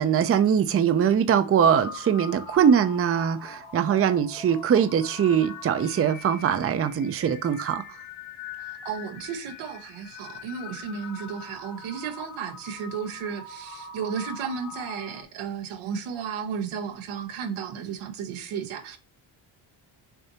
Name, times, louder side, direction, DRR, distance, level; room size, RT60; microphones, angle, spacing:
voice 1, 0.0-7.8, right 8 dB, 30° right, 0.5 m, -22 dB
sound 1, 1.8-15.2, left 5 dB, 65° left, 2.5 m, -42 dB
voice 2, 8.6-19.0, right 7 dB, 85° right, 1.1 m, -34 dB
6.7 x 2.7 x 2.9 m
cardioid pair, 95°, 47 cm